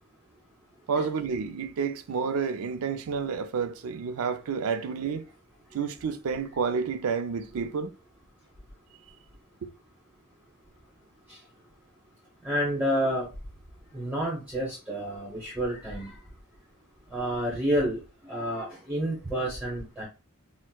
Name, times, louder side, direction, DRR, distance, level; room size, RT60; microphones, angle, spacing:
voice 1, 0.9-5.3 5.7-7.9, right 5 dB, 70° right, 0.4 m, -30 dB
voice 2, 12.4-13.3 13.9-16.2 17.1-18.0 18.2-20.1, equal, 5° right, 0.8 m, -29 dB
4.2 x 2.0 x 2.2 m
head